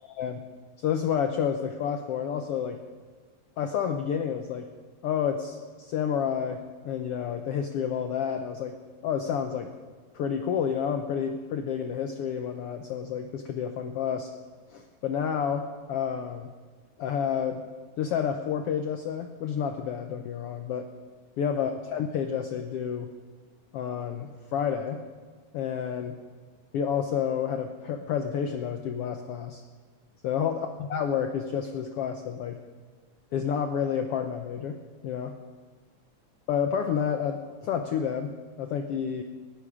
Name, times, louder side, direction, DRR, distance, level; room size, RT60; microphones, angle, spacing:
voice 1, 0.1-0.4 0.8-2.8 3.6-4.7 5.0-9.7 10.1-14.3 14.7-16.5 17.0-17.6 18.0-20.9 21.4-23.1 23.7-25.0 25.5-26.2 26.7-29.6 30.2-32.6 33.3-35.3 36.5-39.2, left 8 dB, 75° left, 6 dB, 1.4 m, -30 dB
18.5 x 15.5 x 4.9 m, 1.5 s
omnidirectional pair, 3.4 m